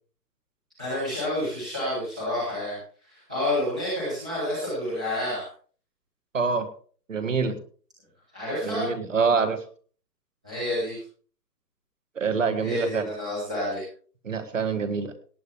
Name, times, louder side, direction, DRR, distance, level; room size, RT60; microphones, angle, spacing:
voice 1, 0.8-5.5 8.3-8.9 10.4-11.0 12.6-13.9, left 1 dB, 5° right, -10 dB, 1.0 m, -29 dB
voice 2, 6.3-6.7 7.1-7.6 8.6-9.6 12.2-13.0 14.2-15.1, right 5 dB, 50° right, 9 dB, 1.7 m, -25 dB
17.5 x 8.8 x 3.4 m, 0.43 s
hypercardioid pair, 180°, 50 cm